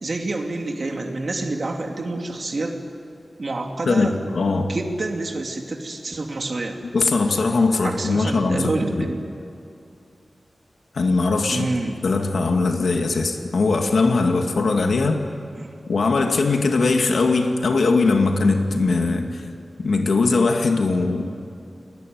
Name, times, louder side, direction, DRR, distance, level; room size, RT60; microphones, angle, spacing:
voice 1, 0.0-2.7 3.4-4.2 4.7-6.8 7.8-9.2 11.5-12.0 15.6-15.7, right 2 dB, 50° right, 2 dB, 2.8 m, -27 dB
voice 2, 3.9-4.7 6.8-9.1 10.9-11.7 12.0-15.2 15.9-19.4 19.8-21.3, left 3 dB, 85° left, 4 dB, 2.3 m, -20 dB
29.5 x 20.0 x 9.6 m, 2.5 s
wide cardioid pair, 120°, 0 cm